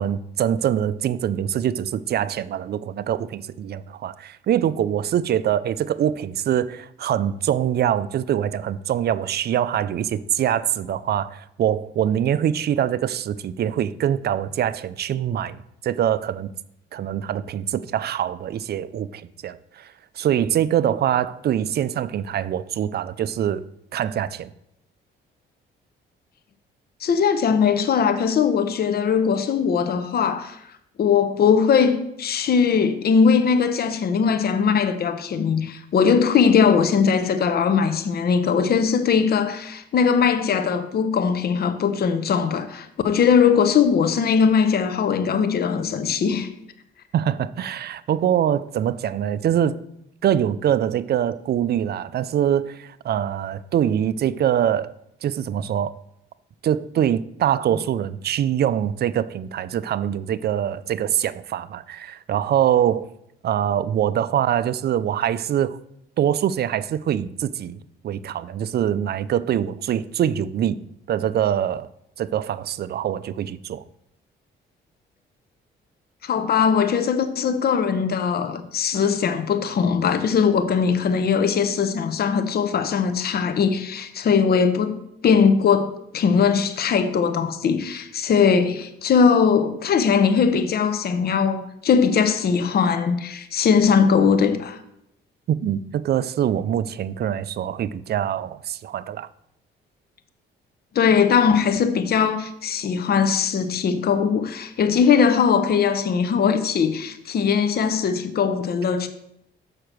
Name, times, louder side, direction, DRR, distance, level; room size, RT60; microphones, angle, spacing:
voice 1, 0.0-16.5 16.9-23.7 23.9-24.5 47.1-49.8 50.2-54.9 55.2-56.0 56.6-63.1 63.4-65.8 66.2-70.8 71.1-71.9 72.2-73.8 95.5-99.3, right 10 dB, 55° right, 0.5 m, -24 dB
voice 2, 27.0-30.6 31.0-46.5 76.2-94.8 100.9-109.1, left 6 dB, 50° left, 0.8 m, -20 dB
6.7 x 5.7 x 6.2 m
cardioid pair, 90°, 20 cm